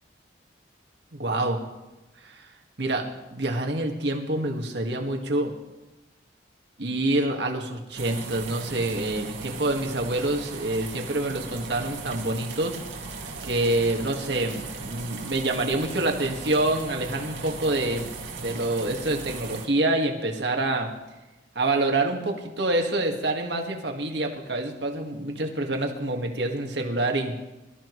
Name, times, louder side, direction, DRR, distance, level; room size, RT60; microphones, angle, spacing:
voice 1, 1.1-1.6 2.2-2.5 2.8-3.1 3.3-5.5 6.8-12.8 13.4-18.1 18.4-20.9 21.6-27.4, right 2 dB, 60° right, 2 dB, 1.9 m, -26 dB
sound 1, 8.0-19.7, right 4 dB, 80° right, 2.4 m, -38 dB
23.5 x 13.5 x 3.2 m, 1.0 s
head